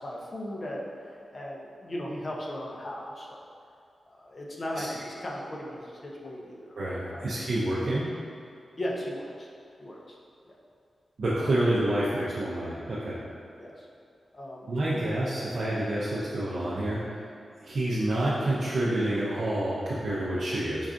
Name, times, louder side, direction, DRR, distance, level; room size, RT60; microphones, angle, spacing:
voice 1, 0.0-3.4 4.1-6.8 7.1-7.4 8.7-9.5 9.8-10.2 11.4-11.6 13.6-13.9 14.3-14.7, left 1 dB, 40° left, -3 dB, 0.5 m, -37 dB
voice 2, 6.8-8.1 11.2-13.2 14.7-17.3 17.6-20.9, right 1 dB, 65° right, -8 dB, 0.5 m, -28 dB
5.2 x 2.4 x 2.5 m, 2.4 s
wide cardioid pair, 105°, 0 cm